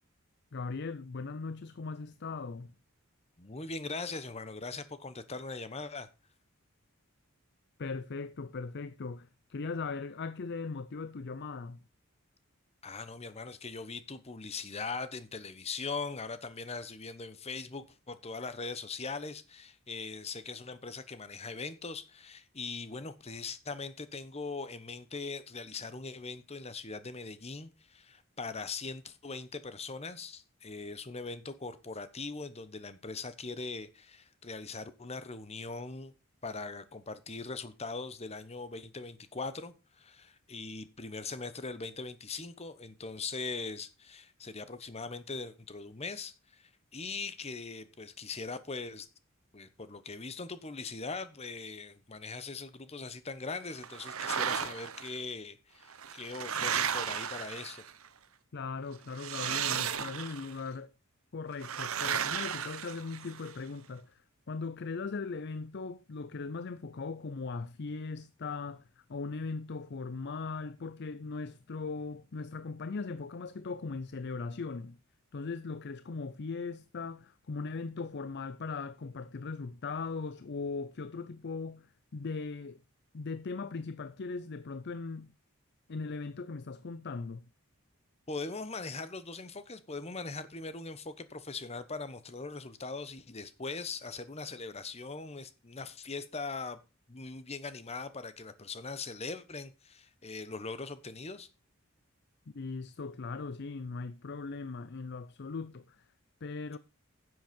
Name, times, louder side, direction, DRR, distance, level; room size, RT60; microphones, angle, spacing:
voice 1, 0.5-2.7 7.8-11.8 58.5-60.9 61.3-75.0 75.3-82.8 83.1-85.3 85.9-87.4 102.5-106.1 106.4-106.8, left 4 dB, 50° left, 0.5 m, -39 dB
voice 2, 3.4-6.1 12.8-36.1 36.4-49.1 49.5-57.8 88.3-96.8 97.1-101.5, left 4 dB, 30° left, 1.0 m, -41 dB
sound 1, 53.8-55.1 55.9-58.1 59.1-60.6 61.6-63.5, right 8 dB, 75° right, 1.0 m, -34 dB
10.0 x 7.9 x 5.3 m
head